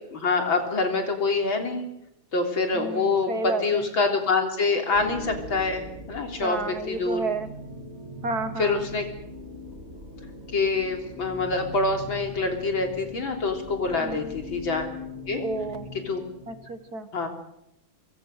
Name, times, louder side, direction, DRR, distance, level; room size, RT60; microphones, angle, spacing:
voice 1, 0.1-1.9 2.3-7.2 8.6-9.0 10.5-14.8 15.3-15.4 16.1-16.2 17.1-17.3, left 3 dB, 65° left, 4 dB, 4.1 m, -26 dB
voice 2, 2.7-3.9 6.4-7.5 8.2-8.9 14.0-14.4 15.4-15.9 16.5-17.1, right 3 dB, 50° right, 10 dB, 1.8 m, -31 dB
sound 1, 4.9-16.9, left 1 dB, 30° right, 3.4 m, -40 dB
25.0 x 24.0 x 6.6 m, 0.85 s
omnidirectional pair, 2.3 m